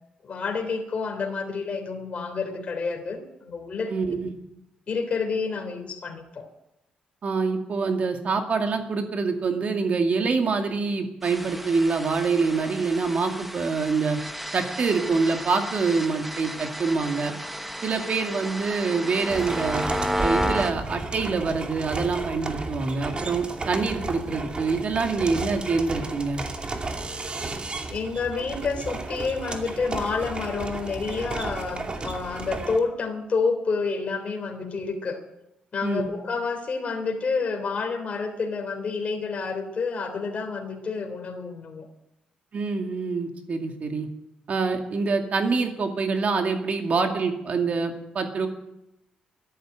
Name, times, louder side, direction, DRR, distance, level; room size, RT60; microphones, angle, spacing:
voice 1, 0.2-3.9 4.9-6.5 27.9-35.2 35.7-41.9, left 4 dB, 50° left, 3 dB, 3.4 m, -29 dB
voice 2, 3.9-4.3 7.2-14.2 14.5-17.3 17.8-19.8 20.2-26.4 35.8-36.1 42.5-44.1 44.5-48.5, right 4 dB, 55° right, 4 dB, 2.3 m, -25 dB
sound 1, 11.2-20.7, equal, 5° right, 1.1 m, -32 dB
sound 2, 19.3-32.8, right 3 dB, 35° right, 2.5 m, -33 dB
13.0 x 11.5 x 9.1 m, 0.87 s
cardioid pair, 85°, 3 cm